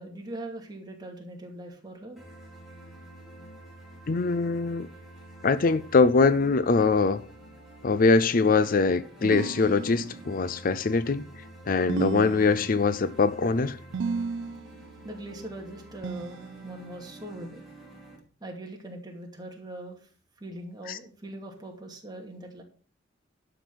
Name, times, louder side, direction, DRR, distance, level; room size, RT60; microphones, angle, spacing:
voice 1, 0.0-2.2 15.0-17.6 18.4-20.1 20.4-22.6, right 1 dB, 20° right, 2.4 m, -41 dB
sound 1, 2.2-18.2, right 1 dB, ahead, 3.5 m, -48 dB
voice 2, 4.1-4.9 5.4-7.2 7.8-11.3 11.7-13.8 20.9-21.0, left 4 dB, 45° left, 0.5 m, -23 dB
sound 2, 9.2-10.4 11.9-13.0 13.9-14.8 16.0-17.0, right 5 dB, 70° right, 0.4 m, -34 dB
11.5 x 6.0 x 6.0 m
head